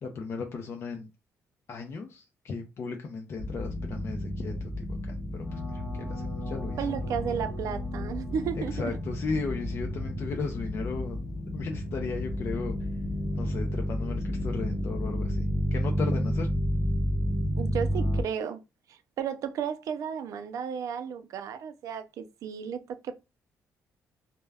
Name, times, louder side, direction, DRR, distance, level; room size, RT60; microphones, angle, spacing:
voice 1, 0.0-1.1 1.7-6.9 8.5-11.2 11.5-12.9 13.3-16.5, left 4 dB, 45° left, 0.4 m, -36 dB
bowed guitar loop, 3.4-18.2, equal, 25° left, 0.8 m, -31 dB
voice 2, 6.8-8.7 17.6-18.6 18.9-23.2, right 7 dB, 70° right, 0.4 m, -33 dB
2.2 x 2.1 x 3.3 m
cardioid pair, 135°, 6 cm